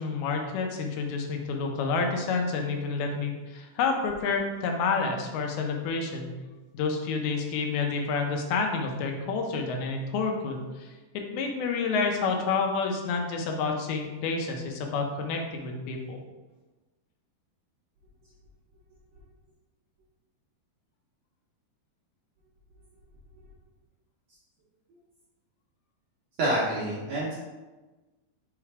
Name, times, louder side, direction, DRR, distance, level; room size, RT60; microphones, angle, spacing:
voice 1, 0.0-6.3 6.7-16.2, left 4 dB, 90° left, 2 dB, 2.7 m, -29 dB
voice 2, 26.4-27.3, right 1 dB, 70° right, -7 dB, 1.6 m, -27 dB
6.1 x 4.8 x 3.3 m, 1.2 s
omnidirectional pair, 4.3 m